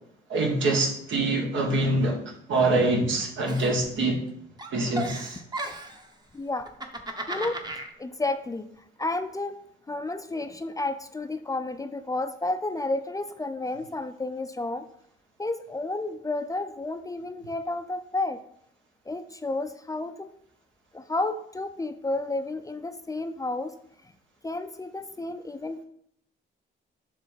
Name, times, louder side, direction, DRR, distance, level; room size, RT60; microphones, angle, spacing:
voice 1, 0.3-2.2 2.5-4.2 4.7-5.4, right 2 dB, 70° right, 1 dB, 1.6 m, -24 dB
Giggle, 3.5-4.3 4.6-6.1 6.6-7.9, right 1 dB, 20° right, 0.9 m, -35 dB
voice 2, 6.3-6.7 7.3-7.6 8.0-8.7 9.0-9.6 9.9-14.8 15.4-18.4 19.1-20.3 20.9-23.7 24.4-25.8, left 2 dB, 15° left, 9 dB, 0.5 m, -31 dB
6.9 x 3.3 x 5.6 m, 0.68 s
cardioid pair, 90°, 20 cm